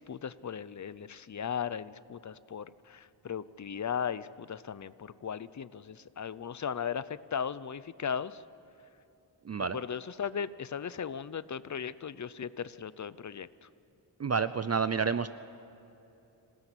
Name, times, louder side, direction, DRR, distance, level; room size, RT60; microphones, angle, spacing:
voice 1, 0.0-8.4 9.6-13.5, left 7 dB, 40° left, 16 dB, 0.7 m, -37 dB
voice 2, 9.4-9.8 14.2-15.3, right 6 dB, 35° right, 13 dB, 0.5 m, -29 dB
26.0 x 18.0 x 9.9 m, 3.0 s
wide cardioid pair, 140°, 45 cm